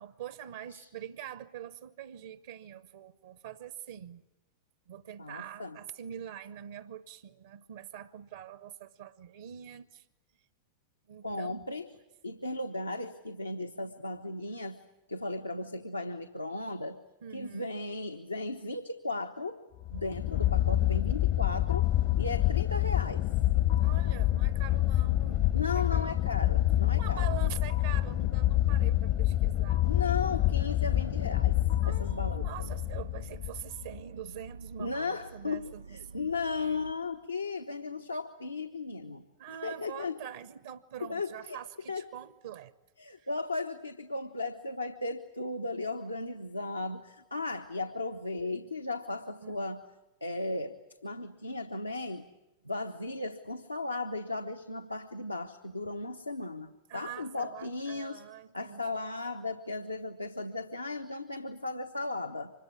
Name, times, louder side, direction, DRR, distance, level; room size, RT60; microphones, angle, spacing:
voice 1, 0.0-4.2 4.9-10.1 11.1-11.6 17.2-17.8 23.8-26.3 26.9-29.9 31.8-36.3 39.4-42.7 43.2-43.3 49.4-49.6 56.9-59.0, right 10 dB, 60° right, 15 dB, 0.8 m, -44 dB
voice 2, 5.2-5.8 11.2-11.9 12.2-14.8 15.1-17.0 17.3-19.6 19.9-21.9 22.2-23.3 25.5-27.3 29.9-31.6 31.9-32.7 34.8-39.2 39.6-40.2 41.0-41.6 41.9-42.0 43.0-49.8 50.2-50.8 51.0-52.3 52.6-58.2 58.5-62.5, left 3 dB, 85° left, 6 dB, 1.0 m, -36 dB
sound 1, 19.8-34.0, left 14 dB, 45° left, 0.8 m, -27 dB
sound 2, 30.8-36.9, right 4 dB, 85° right, 2.2 m, -49 dB
25.0 x 21.5 x 9.5 m, 1.0 s
figure-of-eight pair, 90°, 0 cm